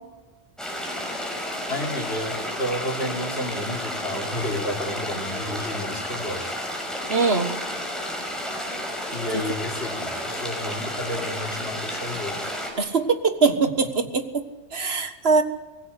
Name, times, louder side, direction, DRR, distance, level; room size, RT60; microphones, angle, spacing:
sound 1, 0.6-12.7, equal, ahead, 5.2 m, -31 dB
voice 1, 1.7-6.5 9.1-12.4, left 1 dB, 60° left, 1 dB, 3.6 m, -31 dB
voice 2, 7.1-7.5 9.3-9.4 12.8-14.4 14.7-15.4, right 4 dB, 60° right, 8 dB, 1.8 m, -22 dB
24.5 x 16.5 x 8.3 m, 1.2 s
omnidirectional pair, 1.2 m